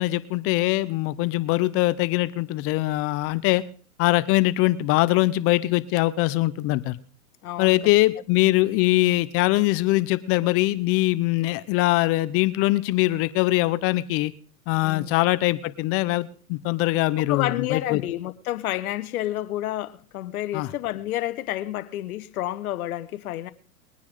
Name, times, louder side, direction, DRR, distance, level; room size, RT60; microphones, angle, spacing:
voice 1, 0.0-3.6 4.0-7.0 7.6-14.3 14.7-18.0 20.5-20.7, left 18 dB, 30° left, 0.6 m, -22 dB
voice 2, 7.4-7.8 14.8-15.1 17.3-23.5, left 14 dB, 70° left, 1.4 m, -29 dB
21.5 x 9.6 x 3.8 m
hypercardioid pair, 130°, 45 cm